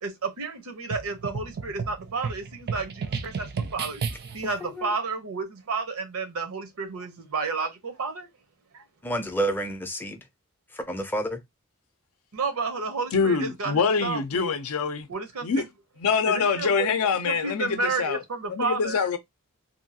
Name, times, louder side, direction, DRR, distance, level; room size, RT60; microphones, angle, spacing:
voice 1, 0.0-4.0 4.3-8.3 8.7-8.8 12.3-14.5 15.1-15.7 16.3-16.9 17.3-19.1, right 4 dB, 65° right, 0.8 m, -31 dB
sound 1, 0.9-4.5, right 5 dB, 45° right, 0.4 m, -33 dB
voice 2, 4.6-4.9 9.0-10.2 10.7-11.4, right 1 dB, 10° left, 0.5 m, -29 dB
voice 3, 13.1-15.1 15.4-15.6 16.0-18.2 18.5-19.2, left 5 dB, 65° left, 0.5 m, -25 dB
2.7 x 2.3 x 2.7 m
head